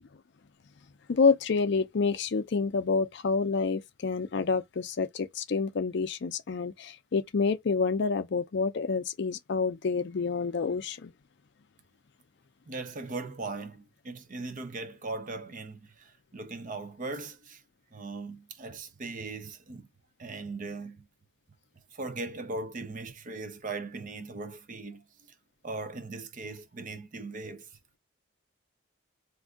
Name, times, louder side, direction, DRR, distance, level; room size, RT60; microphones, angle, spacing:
voice 1, 1.1-11.1, left 4 dB, 55° left, 0.4 m, -28 dB
voice 2, 12.7-17.6 17.9-19.9 20.2-21.0 21.9-25.0 25.6-27.7, right 3 dB, 40° right, 0.5 m, -39 dB
2.5 x 2.3 x 3.6 m
head